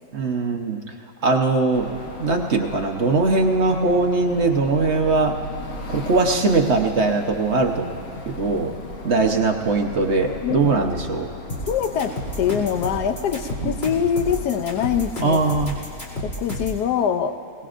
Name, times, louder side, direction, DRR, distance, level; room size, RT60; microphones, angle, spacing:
voice 1, 0.1-0.8 1.2-1.9 2.2-5.4 5.9-7.9 8.3-8.7 9.0-11.3 13.6-13.8 15.2-15.7, right 3 dB, 50° right, 3 dB, 1.1 m, -20 dB
sound 1, 1.7-16.2, left 2 dB, 55° left, 1.4 m, -36 dB
voice 2, 10.4-10.9 11.7-15.4 16.4-17.4, left 8 dB, 85° left, 8 dB, 1.3 m, -24 dB
sound 2, 11.5-16.8, left 1 dB, 40° left, 3.0 m, -31 dB
22.5 x 19.5 x 2.5 m, 2.9 s
omnidirectional pair, 1.7 m